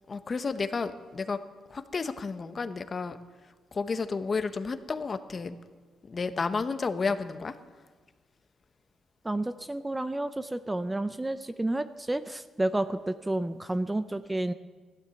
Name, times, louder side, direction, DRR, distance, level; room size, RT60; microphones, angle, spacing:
voice 1, 0.1-1.4 1.7-3.2 3.7-5.6 6.0-7.6, left 4 dB, 35° left, 10 dB, 0.9 m, -31 dB
voice 2, 9.2-14.5, right 1 dB, 15° right, 12 dB, 0.6 m, -30 dB
15.5 x 12.5 x 7.0 m, 1.4 s
cardioid pair, 90°, 0 cm